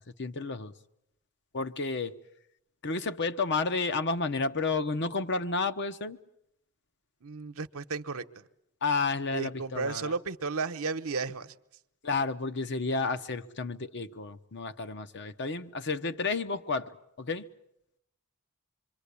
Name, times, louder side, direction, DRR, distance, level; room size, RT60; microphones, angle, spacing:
voice 1, 0.2-0.7 1.5-2.2 2.8-6.2 8.8-10.1 12.0-16.9 17.2-17.4, left 3 dB, 50° left, 9 dB, 1.0 m, -31 dB
voice 2, 7.2-8.3 9.3-11.5, right 4 dB, 70° right, 9 dB, 1.0 m, -33 dB
26.5 x 24.0 x 8.4 m, 0.78 s
head